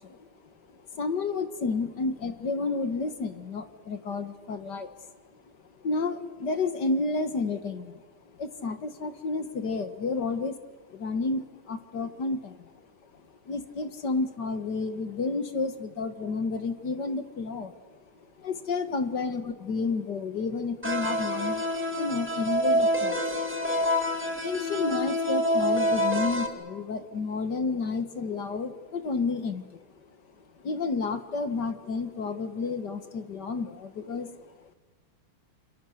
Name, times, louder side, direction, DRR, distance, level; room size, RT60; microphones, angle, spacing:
voice 1, 0.0-5.1 5.3-5.4 5.8-10.6 10.9-23.7 24.4-29.8 30.4-34.7, left 4 dB, 55° left, 9 dB, 2.1 m, -31 dB
sound 1, 20.8-26.5, equal, 5° right, 2.5 m, -27 dB
29.0 x 29.0 x 6.7 m, 1.3 s
omnidirectional pair, 2.3 m